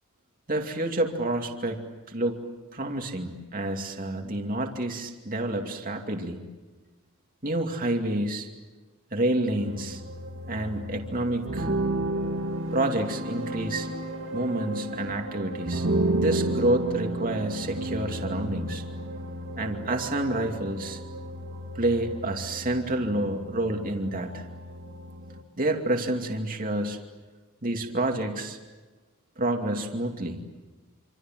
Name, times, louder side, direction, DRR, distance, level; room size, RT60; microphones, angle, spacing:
voice 1, 0.5-1.8 2.1-2.4 2.7-6.4 7.4-8.5 9.1-10.0 10.5-11.7 12.7-13.9 14.3-15.9 16.1-18.8 19.6-21.0 21.8-24.4 25.6-27.0 27.6-28.6 29.4-30.4, right 1 dB, 40° right, 3 dB, 2.6 m, -28 dB
sound 1, 9.6-25.4, right 1 dB, 55° right, 2.3 m, -32 dB
27.0 x 26.5 x 7.6 m, 1.3 s
head